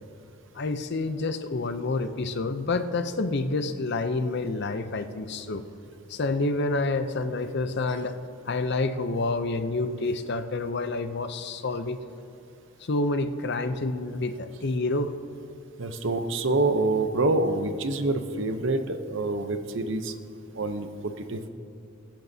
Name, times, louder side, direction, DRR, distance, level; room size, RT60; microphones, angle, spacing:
voice 1, 0.5-5.6 6.1-8.2 8.5-12.0 12.8-15.1, left 3 dB, 50° left, 10 dB, 0.6 m, -28 dB
voice 2, 15.8-20.1 20.5-21.5, right 2 dB, 55° right, 8 dB, 0.7 m, -27 dB
23.0 x 10.5 x 2.8 m, 2.7 s
head